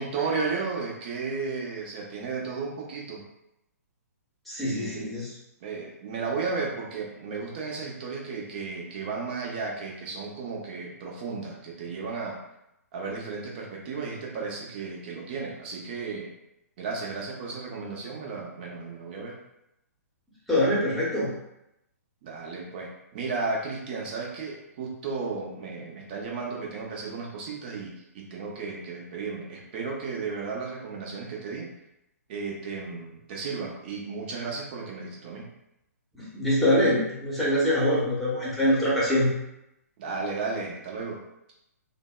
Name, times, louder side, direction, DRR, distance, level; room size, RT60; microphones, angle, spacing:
voice 1, 0.0-3.2 4.7-5.2 5.6-12.4 12.9-16.3 16.8-19.4 22.2-31.7 32.3-35.5 40.0-41.2, right 4 dB, 40° right, -2 dB, 0.6 m, -34 dB
voice 2, 4.5-5.3 20.5-21.3 36.1-39.3, left 1 dB, ahead, -9 dB, 0.9 m, -24 dB
2.6 x 2.1 x 2.3 m, 0.84 s
figure-of-eight pair, 120°, 9 cm